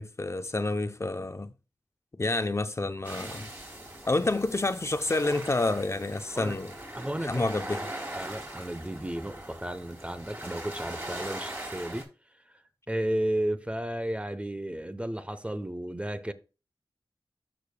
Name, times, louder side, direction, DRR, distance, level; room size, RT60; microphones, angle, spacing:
voice 1, 0.0-1.5 2.1-3.5 4.1-6.8 7.2-7.9, left 2 dB, 35° left, 0.6 m, -29 dB
sound 1, 3.0-12.0, right 1 dB, 30° right, 3.1 m, -40 dB
voice 2, 6.9-7.4 8.1-12.1 12.9-16.3, right 1 dB, 15° right, 0.7 m, -33 dB
13.0 x 5.2 x 2.2 m
cardioid pair, 55°, 8 cm